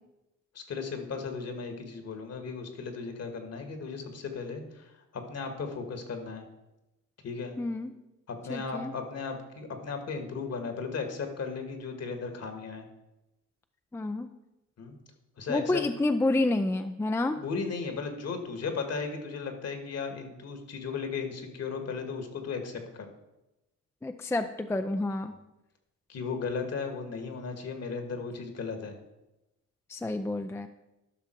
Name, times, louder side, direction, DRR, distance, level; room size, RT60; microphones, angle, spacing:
voice 1, 0.5-6.4 7.2-7.6 8.3-12.8 14.8-14.9 15.4-15.8 17.3-23.0 26.1-28.9, left 5 dB, 55° left, 6 dB, 1.8 m, -36 dB
voice 2, 7.6-7.9 8.5-8.9 13.9-14.3 15.5-17.4 24.0-25.3 29.9-30.7, left 2 dB, 10° left, 8 dB, 0.4 m, -29 dB
12.0 x 5.8 x 4.5 m, 0.96 s
cardioid pair, 90°, 30 cm